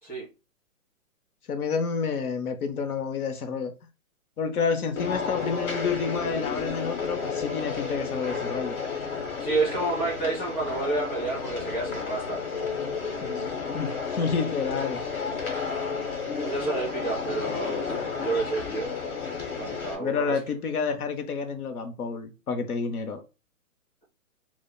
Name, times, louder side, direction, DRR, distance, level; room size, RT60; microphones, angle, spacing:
voice 1, 1.5-3.7 4.4-8.8 13.2-13.5 13.7-15.0 20.0-23.2, left 5 dB, 90° left, 0.7 m, -29 dB
sound 1, 5.0-20.0, left 5 dB, 70° left, 1.2 m, -32 dB
voice 2, 9.4-12.4 16.4-18.9 19.6-20.4, right 3 dB, 5° left, 1.1 m, -29 dB
3.2 x 2.1 x 2.2 m
hypercardioid pair, 175°, 43 cm